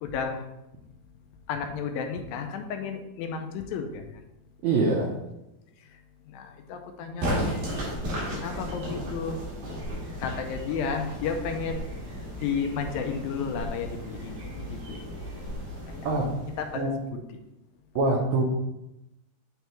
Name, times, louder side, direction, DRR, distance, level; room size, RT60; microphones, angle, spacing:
voice 1, 0.0-0.4 1.5-4.0 6.3-7.6 8.3-9.4 10.2-11.8 12.4-15.6 15.9-16.1 16.6-17.4, left 6 dB, 85° left, 5 dB, 2.3 m, -33 dB
voice 2, 4.6-5.1 16.0-16.2 16.7-17.0 17.9-18.4, right 3 dB, 85° right, -1 dB, 1.6 m, -24 dB
sound 1, 7.2-17.0, equal, 70° right, 3.8 m, -35 dB
9.2 x 3.4 x 3.0 m, 0.91 s
omnidirectional pair, 4.2 m